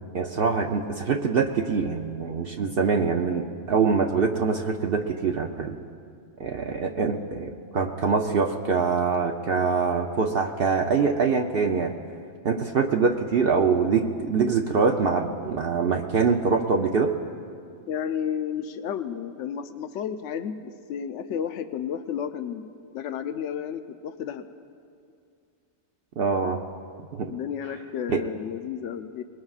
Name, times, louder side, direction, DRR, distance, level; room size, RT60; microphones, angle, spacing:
voice 1, 0.1-5.7 6.4-11.9 12.4-17.2 26.2-26.6 27.1-27.3 28.1-28.2, right 5 dB, 60° right, 3 dB, 0.8 m, -24 dB
voice 2, 17.9-22.7 22.9-24.4 27.3-29.2, left 8 dB, 80° left, 9 dB, 1.0 m, -32 dB
24.5 x 20.5 x 2.4 m, 2.3 s
omnidirectional pair, 1.2 m